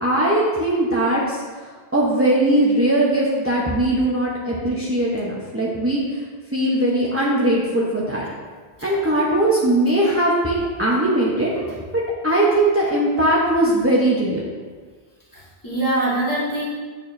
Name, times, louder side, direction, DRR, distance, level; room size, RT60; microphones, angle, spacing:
voice 1, 0.0-1.4 1.9-6.0 6.5-8.3 8.8-11.5 12.2-14.4, right 1 dB, 15° right, -5 dB, 0.8 m, -19 dB
voice 2, 15.3-16.7, right 1 dB, 20° left, -7 dB, 1.8 m, -24 dB
9.1 x 6.4 x 2.7 m, 1.5 s
omnidirectional pair, 1.0 m